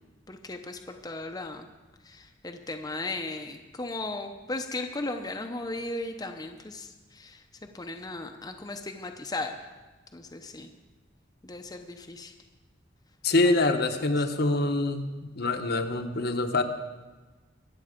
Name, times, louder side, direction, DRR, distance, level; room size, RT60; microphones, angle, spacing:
voice 1, 0.3-1.7 2.0-9.6 10.1-10.7 11.4-12.3 13.4-13.7 14.0-14.1, left 2 dB, 20° left, 4 dB, 0.8 m, -36 dB
voice 2, 13.2-15.1 15.3-16.6, left 2 dB, 60° left, 6 dB, 1.1 m, -25 dB
22.5 x 7.9 x 5.2 m, 1.2 s
head